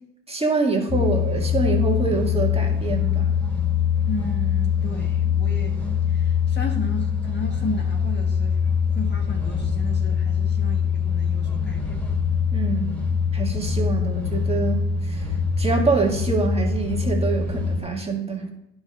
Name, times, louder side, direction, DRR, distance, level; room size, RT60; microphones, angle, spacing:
voice 1, 0.3-3.4 12.5-13.0 13.3-15.3 15.6-18.5, right 3 dB, 20° right, 0 dB, 1.8 m, -25 dB
sound 1, 0.9-17.8, left 7 dB, 5° left, 2.6 m, -23 dB
voice 2, 4.0-5.8 6.1-8.6 8.9-12.0, left 1 dB, 35° left, 2 dB, 1.4 m, -34 dB
9.7 x 5.2 x 5.7 m, 0.86 s
cardioid pair, 90°, 30 cm